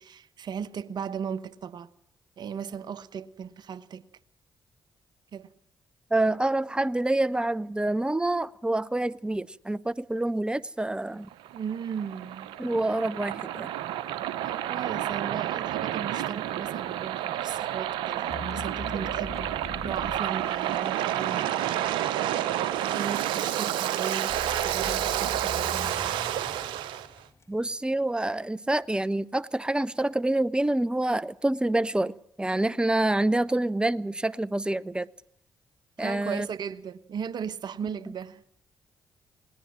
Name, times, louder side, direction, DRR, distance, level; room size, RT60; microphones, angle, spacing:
voice 1, 0.0-1.9 2.4-4.0 5.3-5.5 11.5-12.5 14.4-19.5 19.8-22.0 22.9-26.2 36.0-38.5, right 7 dB, 60° right, 1.1 m, -37 dB
voice 2, 6.1-11.3 12.6-13.7 27.5-32.1 32.4-35.1 36.0-36.5, right 2 dB, 10° right, 0.8 m, -27 dB
Waves surf, 11.3-27.1, right 12 dB, 75° right, 0.9 m, -30 dB
sound 1, 18.3-21.3 24.3-27.7, left 5 dB, 35° left, 0.9 m, -42 dB
20.5 x 18.5 x 7.6 m
hypercardioid pair, 40°, 8 cm